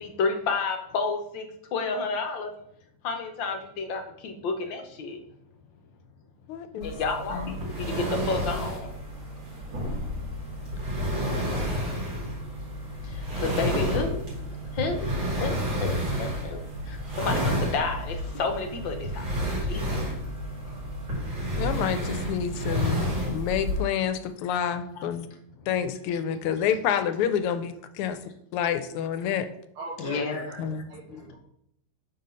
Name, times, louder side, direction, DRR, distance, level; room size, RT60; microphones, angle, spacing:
voice 1, 0.0-1.4 1.7-2.5 3.0-5.2 6.8-7.4 8.3-8.9 13.4-14.2 14.8-15.1 15.4-15.6 15.8-16.6 17.2-19.2 19.7-20.0 30.0-30.5, left 4 dB, 70° left, 5 dB, 1.4 m, -30 dB
voice 2, 6.5-6.9 7.3-7.5 21.6-25.3 25.7-28.2 28.5-29.5 30.6-30.8, left 8 dB, 90° left, 10 dB, 1.5 m, -28 dB
sound 1, 6.8-23.8, equal, 60° right, 3.1 m, -30 dB
voice 3, 7.2-7.6 29.8-30.6 30.9-31.4, right 2 dB, 80° right, -5 dB, 2.0 m, -39 dB
4.9 x 3.9 x 5.5 m, 0.73 s
omnidirectional pair, 2.4 m